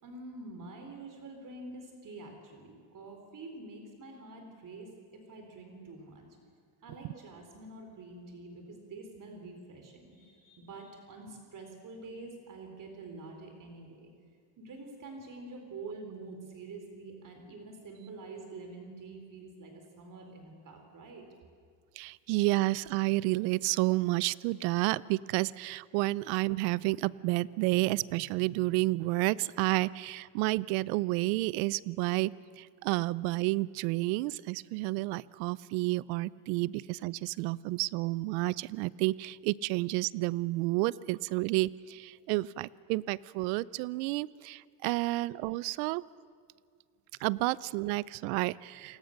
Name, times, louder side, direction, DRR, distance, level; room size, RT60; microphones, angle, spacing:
voice 1, 0.0-6.3 6.8-14.1 14.6-21.3 42.0-42.4, right 3 dB, 40° right, 4 dB, 4.1 m, -47 dB
voice 2, 22.0-46.0 47.2-49.0, right 20 dB, 85° right, 21 dB, 0.7 m, -30 dB
28.5 x 20.0 x 6.6 m, 2.1 s
cardioid pair, 115°, 49 cm